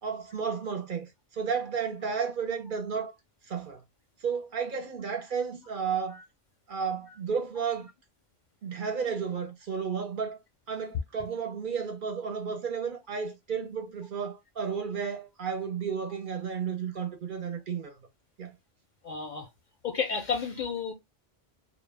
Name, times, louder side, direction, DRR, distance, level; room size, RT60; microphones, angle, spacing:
voice 1, 0.0-3.1 3.5-3.8 4.2-6.2 6.7-7.9 8.6-10.4 10.7-18.0 18.4-18.5, right 6 dB, 60° right, 0.7 m, -32 dB
voice 2, 19.0-19.5 19.8-20.9, left 6 dB, 55° left, 0.5 m, -31 dB
2.1 x 2.0 x 3.2 m
omnidirectional pair, 1.1 m